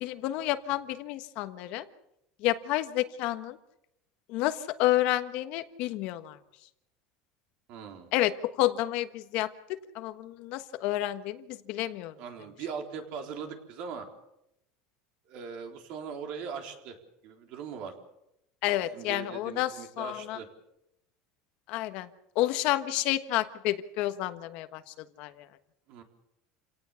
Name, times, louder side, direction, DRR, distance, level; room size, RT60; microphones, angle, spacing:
voice 1, 0.0-1.8 2.4-3.6 4.3-6.4 8.1-9.5 9.9-12.1 18.6-20.4 21.7-22.1 22.3-25.5, left 15 dB, 55° left, 10 dB, 1.3 m, -30 dB
voice 2, 7.7-8.1 12.2-14.1 15.3-17.0 17.2-17.9 18.9-20.5 25.9-26.0, right 6 dB, 55° right, 4 dB, 3.9 m, -40 dB
28.0 x 18.0 x 7.0 m, 0.83 s
cardioid pair, 155°, 2 cm